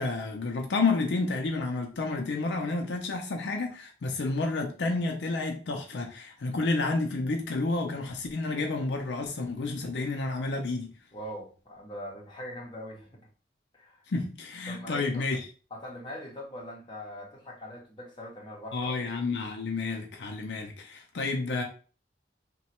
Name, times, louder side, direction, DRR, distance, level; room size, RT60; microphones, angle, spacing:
voice 1, 0.0-10.9 14.1-15.5 18.7-21.6, left 3 dB, 70° left, 0.5 m, -30 dB
voice 2, 11.1-13.2 13.7-14.0 14.7-15.3 15.7-18.9, equal, 25° left, 0.8 m, -42 dB
3.0 x 2.2 x 2.8 m
head